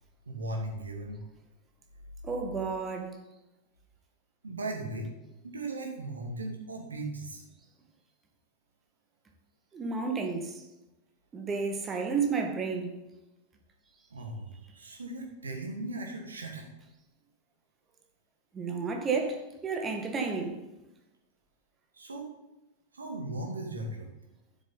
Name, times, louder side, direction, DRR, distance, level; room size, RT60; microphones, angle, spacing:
voice 1, 0.3-1.2 4.4-5.1 5.4-7.4 14.1-16.6 21.9-22.3 22.9-24.1, right 2 dB, 75° right, 2.4 m, -37 dB
voice 2, 2.2-3.2 9.7-10.6 11.3-13.0 18.5-20.6, right 4 dB, 20° right, 1.7 m, -31 dB
12.0 x 7.0 x 4.0 m
figure-of-eight pair, 90°, 0 cm